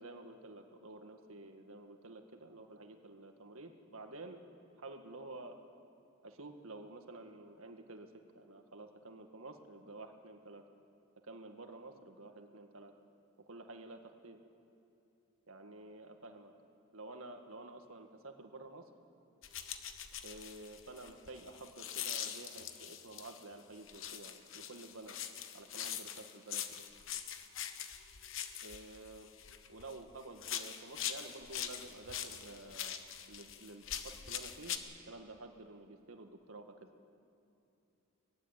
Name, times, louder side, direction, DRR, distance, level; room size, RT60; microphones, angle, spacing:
voice 1, 0.0-4.4 4.8-5.6 6.2-8.1 8.4-10.6 11.2-12.9 13.5-14.4 15.5-16.5 16.9-18.9 20.2-25.2 25.5-26.9 28.6-29.3 29.7-33.0 33.3-34.8 35.1-36.9, right 2 dB, 75° right, 5 dB, 1.9 m, -51 dB
sound 1, 19.4-23.4 23.9-30.0 30.4-34.8, left 9 dB, 65° left, 1.1 m, -43 dB
19.5 x 15.5 x 10.0 m, 2.8 s
head